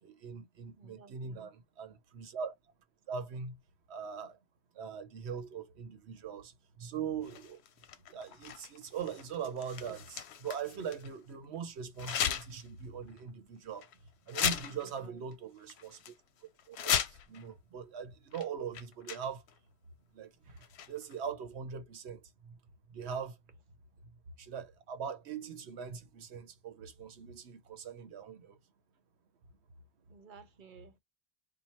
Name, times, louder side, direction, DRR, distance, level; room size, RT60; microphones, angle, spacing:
voice 1, 0.0-2.5 3.1-3.6 3.9-4.4 4.7-7.6 8.1-13.9 14.3-16.1 16.7-19.4 20.1-22.6 22.9-23.4 24.0-24.1 24.4-28.6, right 7 dB, 90° right, 1.1 m, -41 dB
voice 2, 0.8-1.5 14.6-15.2 30.1-31.0, right 6 dB, 55° right, 0.9 m, -56 dB
sound 1, 7.2-11.1 12.0-12.7 13.1-13.2 13.8-13.9 14.3-15.3 15.7-16.1 16.6-17.4 18.3-18.4 18.7-19.5 20.6-21.1, left 9 dB, 85° left, 0.9 m, -36 dB
4.6 x 2.3 x 4.2 m
omnidirectional pair, 1.1 m